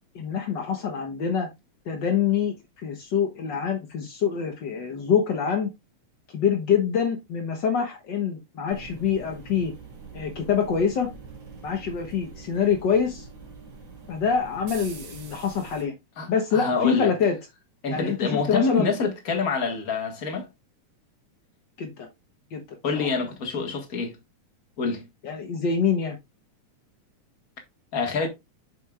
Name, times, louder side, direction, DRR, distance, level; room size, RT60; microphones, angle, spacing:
voice 1, 0.1-1.5 1.8-5.7 6.3-9.7 10.1-11.1 11.6-13.3 14.1-15.9 16.3-17.4 17.9-18.9 21.8-22.1 22.5-22.6 22.9-23.1 25.2-26.2, left 7 dB, 65° left, 1.1 m, -25 dB
sound 1, 8.7-15.8, right 4 dB, 55° right, 2.7 m, -44 dB
voice 2, 16.2-17.1 17.8-20.5 22.8-24.2 24.8-25.0 27.9-28.3, left 4 dB, 40° left, 1.5 m, -26 dB
7.7 x 6.4 x 2.4 m
omnidirectional pair, 3.5 m